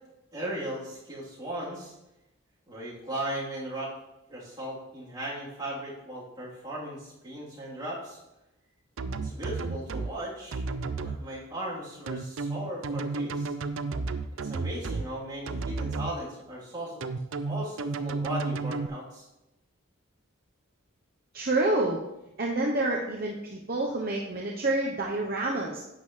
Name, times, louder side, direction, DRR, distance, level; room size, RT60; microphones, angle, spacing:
voice 1, 0.3-1.9 2.7-3.9 4.3-8.2 9.2-10.6 11.0-13.5 14.4-17.0 17.4-19.3, right 1 dB, 20° right, -8 dB, 3.3 m, -37 dB
sound 1, 9.0-10.1 10.5-11.2 12.1-15.1 15.5-16.1 17.0-18.9, right 3 dB, 70° right, 0.5 m, -32 dB
voice 2, 21.3-22.0 22.4-25.8, right 2 dB, 45° right, -2 dB, 0.8 m, -28 dB
11.0 x 8.5 x 3.2 m, 0.93 s
head